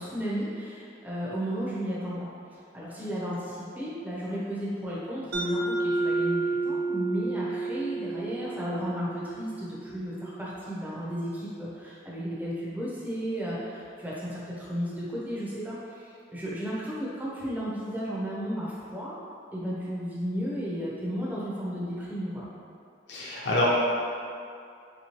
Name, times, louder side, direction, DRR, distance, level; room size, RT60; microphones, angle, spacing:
voice 1, 0.0-19.2 19.5-22.5, equal, 10° right, -8 dB, 0.6 m, -34 dB
Mallet percussion, 5.3-9.9, right 3 dB, 55° right, 0.5 m, -30 dB
voice 2, 23.1-23.7, left 2 dB, 65° left, -6 dB, 0.5 m, -26 dB
3.2 x 2.9 x 2.9 m, 2.4 s
head